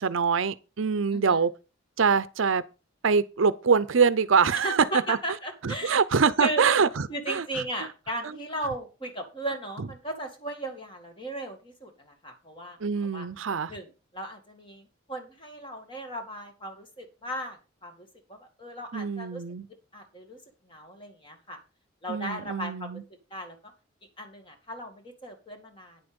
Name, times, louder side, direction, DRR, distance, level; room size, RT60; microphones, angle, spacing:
voice 1, 0.0-1.5 2.0-2.6 3.0-5.2 5.6-7.5 8.2-8.4 12.8-13.7 18.9-19.6 22.1-23.0, right 5 dB, 65° right, 0.6 m, -24 dB
voice 2, 4.6-6.0 6.4-6.6 7.1-12.8 13.1-13.3 13.7-13.9 14.1-19.4 19.9-20.4 20.6-21.6 22.0-23.0 23.3-23.7 24.2-26.0, right 1 dB, 25° left, 2.1 m, -36 dB
9.4 x 7.9 x 5.2 m
head